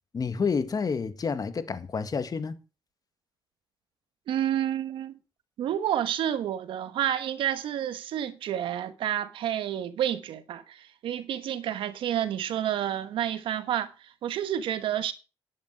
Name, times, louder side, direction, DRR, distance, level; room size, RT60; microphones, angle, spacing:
voice 1, 0.1-2.6, left 5 dB, 45° left, 2.0 m, -29 dB
voice 2, 4.3-5.2 5.6-15.1, right 10 dB, 85° right, 1.3 m, -29 dB
11.0 x 10.5 x 4.6 m
cardioid pair, 70°, 9 cm